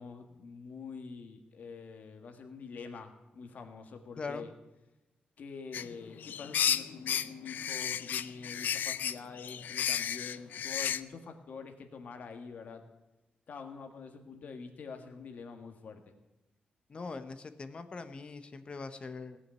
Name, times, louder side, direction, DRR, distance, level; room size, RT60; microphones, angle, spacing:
voice 1, 0.0-4.5 5.4-12.8 13.5-16.1, left 5 dB, 60° left, 5 dB, 1.8 m, -46 dB
sound 1, 5.7-11.0, left 9 dB, 80° left, 0.5 m, -33 dB
voice 2, 16.9-19.4, left 4 dB, 35° left, 10 dB, 0.9 m, -41 dB
17.5 x 6.2 x 8.8 m, 1.0 s
wide cardioid pair, 130°, 3 cm